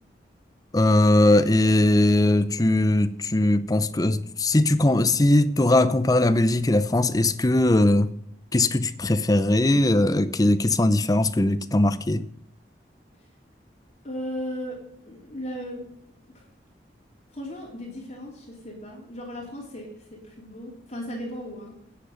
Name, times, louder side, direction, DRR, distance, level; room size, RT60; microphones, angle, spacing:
voice 1, 0.7-8.1 8.5-12.2, left 1 dB, 20° left, 0.6 m, -20 dB
voice 2, 14.0-15.9 16.2-16.4 17.3-21.8, equal, 35° left, 3.1 m, -36 dB
10.0 x 7.9 x 6.5 m
head